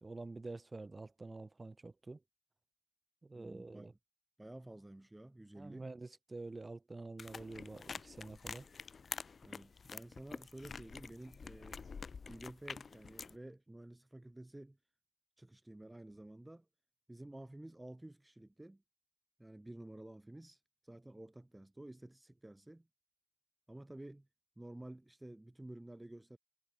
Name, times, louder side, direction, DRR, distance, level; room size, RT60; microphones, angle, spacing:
voice 1, 0.0-2.2 3.2-3.9 5.5-8.7, right 3 dB, 45° right, 2.5 m, -48 dB
voice 2, 3.4-3.9 4.4-5.9 9.4-11.9 12.3-14.8 15.4-16.7 17.1-18.8 19.4-22.9 23.7-24.3 24.6-26.4, right 1 dB, 20° right, 1.8 m, -52 dB
sound 1, 7.2-13.4, left 5 dB, 80° left, 1.0 m, -48 dB
cardioid pair, 55°, 0 cm